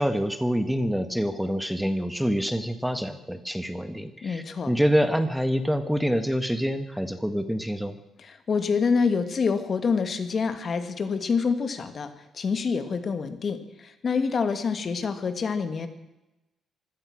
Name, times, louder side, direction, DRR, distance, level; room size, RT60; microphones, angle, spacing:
voice 1, 0.0-8.0, equal, 5° right, 9 dB, 1.5 m, -26 dB
voice 2, 4.2-4.7 8.2-12.1 12.3-15.9, left 5 dB, 45° left, 9 dB, 2.4 m, -26 dB
25.0 x 16.5 x 6.3 m, 0.98 s
cardioid pair, 90°, 0 cm